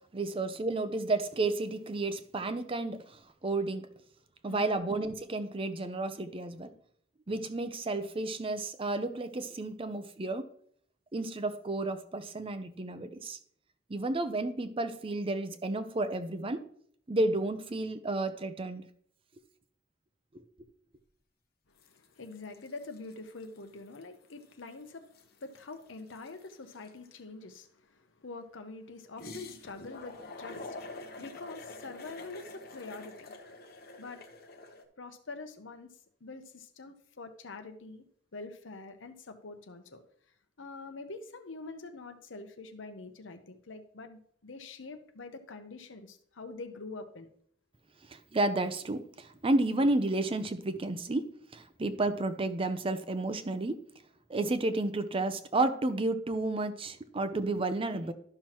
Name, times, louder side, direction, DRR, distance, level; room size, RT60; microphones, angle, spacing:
voice 1, 0.1-3.9 4.4-6.7 7.3-10.5 11.1-13.4 13.9-16.7 17.1-18.9 20.3-20.4 48.1-53.8 54.3-58.1, right 2 dB, 30° right, 11 dB, 0.5 m, -31 dB
voice 2, 4.5-4.8 21.8-33.4 34.0-34.2 35.0-35.9 36.2-38.0 38.3-40.0 40.6-47.3, left 3 dB, 85° left, 7 dB, 0.9 m, -45 dB
sound 1, 21.8-22.1 22.3-23.6 23.9-24.0 24.3-27.2 29.2-34.8, left 2 dB, 55° left, 0.9 m, -46 dB
12.0 x 5.8 x 3.0 m, 0.63 s
head